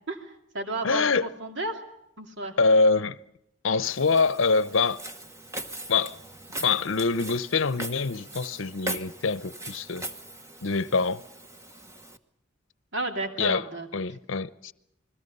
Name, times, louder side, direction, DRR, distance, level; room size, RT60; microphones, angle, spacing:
voice 1, 0.1-1.1 1.4-1.8 2.2-2.6 12.9-13.9, right 2 dB, 60° right, 2.6 m, -32 dB
voice 2, 0.8-1.3 2.6-3.2 3.6-5.0 5.9-6.2 6.6-10.0 10.6-11.2 13.4-13.6 13.9-14.7, left 4 dB, 70° left, 0.8 m, -24 dB
Walk footsteps, 3.8-12.2, right 1 dB, 15° right, 1.1 m, -40 dB
29.0 x 21.0 x 5.5 m
head